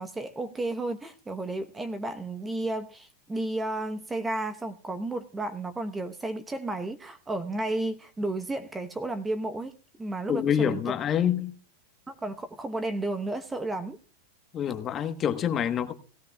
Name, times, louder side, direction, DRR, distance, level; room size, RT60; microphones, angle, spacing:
voice 1, 0.0-9.7 10.0-10.8 12.1-14.0, right 2 dB, 10° right, 0.8 m, -32 dB
voice 2, 10.3-11.5 14.5-15.9, left 9 dB, 30° left, 1.1 m, -26 dB
17.5 x 14.5 x 2.3 m
supercardioid pair, 130°, 0 cm